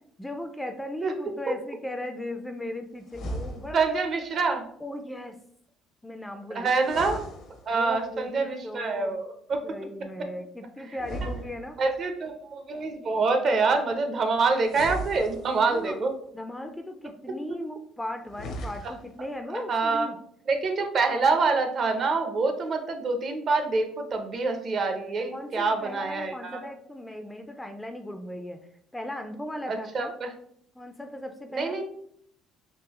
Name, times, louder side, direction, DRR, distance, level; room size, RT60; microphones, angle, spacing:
voice 1, 0.2-3.8 4.8-5.4 6.0-6.7 7.7-9.2 9.6-11.8 15.7-16.0 16.3-20.2 25.3-28.6 28.9-30.1 30.8-31.8, left 1 dB, 10° left, 6 dB, 0.4 m, -37 dB
sound 1, 3.1-4.0 6.7-8.1 10.9-12.1 14.6-15.9 18.2-19.2, right 1 dB, 60° left, 0.6 m, -37 dB
voice 2, 3.7-4.7 6.5-7.3 7.6-9.6 11.2-11.3 11.8-16.1 17.5-17.6 19.5-20.1 20.5-26.7 29.7-30.3 31.5-31.8, right 4 dB, 45° right, 5 dB, 0.6 m, -26 dB
3.7 x 2.7 x 3.0 m, 0.66 s
cardioid pair, 100°, 0 cm